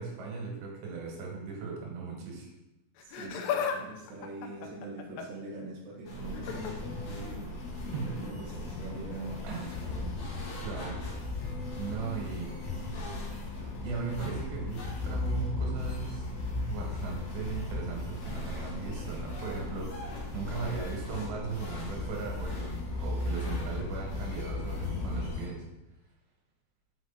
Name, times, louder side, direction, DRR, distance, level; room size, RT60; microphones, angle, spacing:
voice 1, 0.0-2.5 7.9-8.1 9.4-9.8 10.6-11.0 11.8-12.6 13.8-25.7, right 5 dB, 80° right, 0 dB, 3.6 m, -38 dB
Laughter, 3.0-3.8 4.1-5.4 6.3-6.7 8.0-8.2 9.1-9.2, left 7 dB, 85° left, 2.8 m, -34 dB
voice 2, 3.0-7.5 7.8-10.1, right 2 dB, 50° right, -4 dB, 1.5 m, -43 dB
sound 1, 6.1-25.5, left 2 dB, 60° left, 2.0 m, -36 dB
6.1 x 5.9 x 4.1 m, 0.93 s
omnidirectional pair, 4.9 m